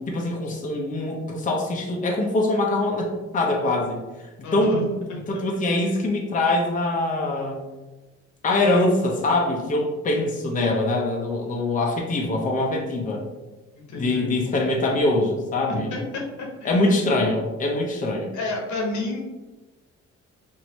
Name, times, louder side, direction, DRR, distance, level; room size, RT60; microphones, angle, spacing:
voice 1, 0.0-4.7 5.3-7.6 8.4-13.2 13.9-15.9 16.6-18.3, left 2 dB, 25° left, -1 dB, 0.6 m, -23 dB
voice 2, 4.4-5.3 13.8-14.3 15.7-17.0 18.3-19.2, left 2 dB, 75° left, 0 dB, 0.9 m, -31 dB
2.9 x 2.6 x 3.1 m, 1.1 s
cardioid pair, 90°, 30 cm